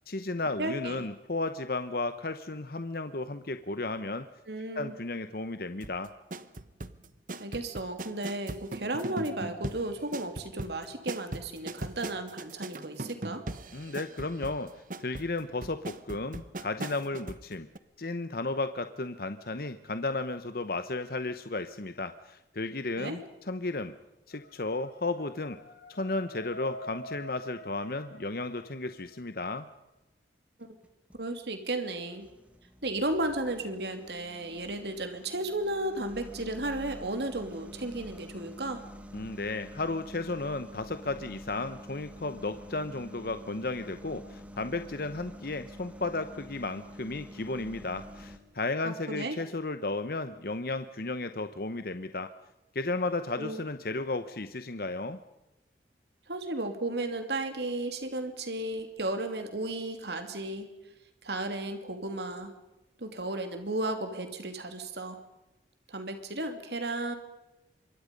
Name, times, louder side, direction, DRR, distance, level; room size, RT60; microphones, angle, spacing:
voice 1, 0.1-4.3 4.7-6.1 13.7-14.7 15.0-17.7 18.0-23.9 24.3-25.6 25.9-29.7 39.1-52.3 52.7-55.2, left 2 dB, 55° left, 10 dB, 1.0 m, -34 dB
voice 2, 0.6-1.1 4.5-4.9 7.4-13.4 23.0-23.2 30.6-30.7 31.1-32.3 32.8-38.8 48.8-49.4 53.4-53.6 56.3-60.7 61.2-62.5 63.0-65.2 65.9-67.1, right 2 dB, 70° right, 7 dB, 2.8 m, -34 dB
sound 1, 5.8-17.5 17.8-17.9, right 2 dB, 45° right, 1.1 m, -40 dB
sound 2, 24.3-29.3, equal, 90° left, 5.1 m, -46 dB
sound 3, 30.6-31.2 31.8-48.4, equal, 10° right, 1.8 m, -48 dB
26.0 x 23.5 x 5.3 m, 0.98 s
head